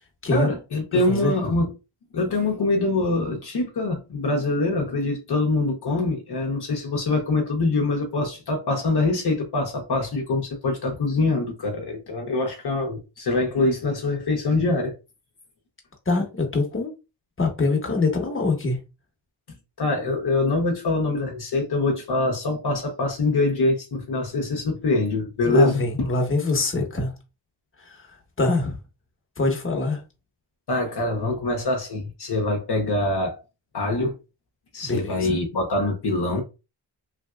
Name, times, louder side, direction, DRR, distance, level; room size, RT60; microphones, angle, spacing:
voice 1, 0.3-1.7 2.1-14.9 19.8-26.1 30.7-33.4 33.7-34.1 34.7-36.4, left 2 dB, 55° left, 0.9 m, -24 dB
voice 2, 0.9-1.3 16.1-16.9 17.4-18.8 25.4-27.1 27.8-28.1 28.4-28.8 29.4-30.0 34.8-35.4, left 3 dB, 25° left, 1.2 m, -24 dB
3.2 x 2.6 x 2.3 m
cardioid pair, 55°, 46 cm